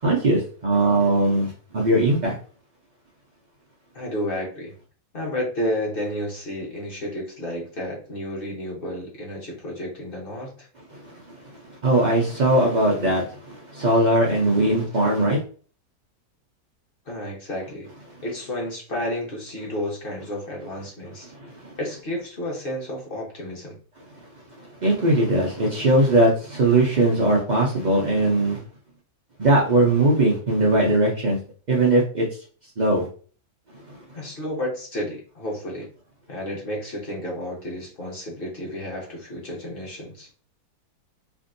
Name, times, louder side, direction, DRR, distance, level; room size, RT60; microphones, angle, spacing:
voice 1, 0.0-2.3 10.9-11.2 11.6-15.4 21.3-21.7 24.6-28.6 29.4-31.4 31.7-32.3 32.8-33.1 33.9-34.0, right 1 dB, 65° right, -3 dB, 0.4 m, -20 dB
voice 2, 3.9-4.7 5.1-10.7 17.1-17.9 18.2-21.3 21.8-23.8 34.1-35.9 36.3-40.3, left 1 dB, 40° left, -2 dB, 1.0 m, -31 dB
3.4 x 2.6 x 2.6 m, 0.41 s
omnidirectional pair, 1.7 m